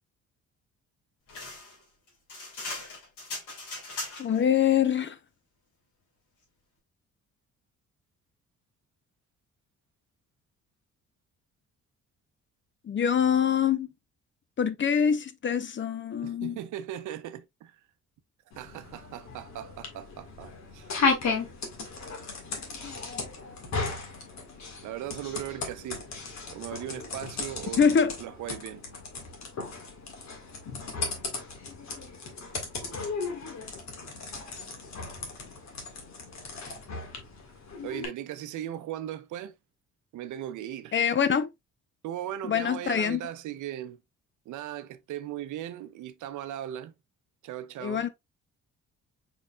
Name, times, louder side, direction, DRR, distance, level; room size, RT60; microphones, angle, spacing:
sound 1, 1.3-4.4, left 2 dB, 80° left, 2.7 m, -39 dB
voice 1, 4.2-5.2 12.8-13.9 14.6-16.6 27.8-28.1 40.9-41.5 42.5-43.2 47.8-48.1, left 7 dB, 40° left, 0.7 m, -24 dB
voice 2, 16.2-17.8 18.6-20.9 24.8-26.1 26.5-27.8 28.2-28.8 37.8-39.6 40.1-41.0 42.0-44.0 44.5-46.9 47.4-48.1, right 11 dB, 80° right, 0.6 m, -38 dB
sound 2, 18.5-38.1, left 4 dB, 65° left, 1.8 m, -35 dB
4.8 x 4.1 x 2.3 m
cardioid pair, 90°, 30 cm